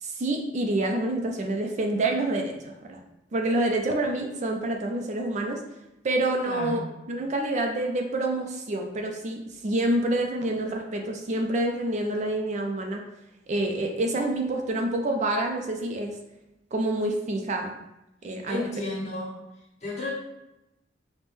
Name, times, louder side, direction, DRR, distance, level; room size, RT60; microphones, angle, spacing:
voice 1, 0.0-3.0 3.3-5.6 6.0-13.0 13.5-16.2 16.7-17.7 18.2-18.7, right 1 dB, 40° right, 3 dB, 0.4 m, -27 dB
voice 2, 6.4-6.8 18.5-19.4 19.8-20.1, left 2 dB, 40° left, -7 dB, 1.4 m, -32 dB
5.1 x 2.1 x 3.1 m, 0.91 s
head